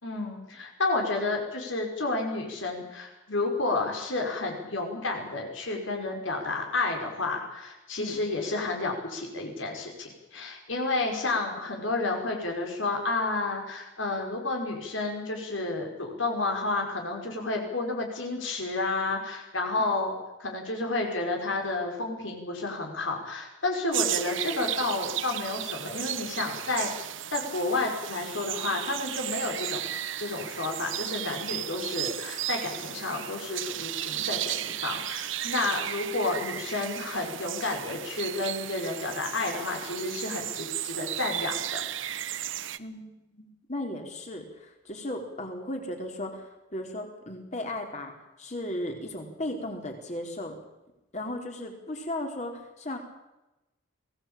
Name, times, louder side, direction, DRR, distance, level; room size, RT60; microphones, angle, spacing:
voice 1, 0.0-20.1 20.4-26.9 27.3-29.8 30.2-41.8, left 2 dB, 70° left, 1 dB, 5.5 m, -31 dB
sound 1, 23.9-42.8, right 12 dB, 75° right, 1.1 m, -34 dB
voice 2, 42.8-48.1 48.4-50.6 51.1-53.0, left 1 dB, 35° left, 3 dB, 4.5 m, -36 dB
23.0 x 18.0 x 8.9 m, 1.0 s
head